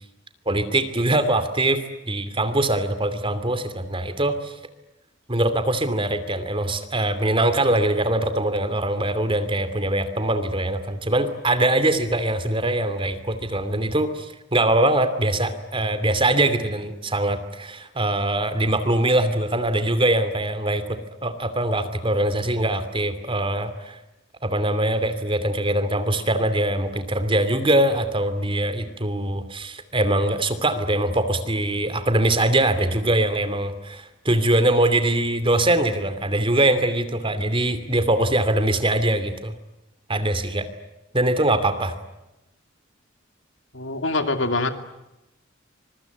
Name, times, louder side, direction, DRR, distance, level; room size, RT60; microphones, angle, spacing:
voice 1, 0.5-4.5 5.3-24.0 24.4-39.6 40.1-40.7 41.1-42.0, right 1 dB, 30° right, 11 dB, 2.7 m, -22 dB
voice 2, 43.7-44.7, left 2 dB, 80° left, 8 dB, 2.8 m, -24 dB
25.0 x 23.5 x 9.5 m, 0.95 s
head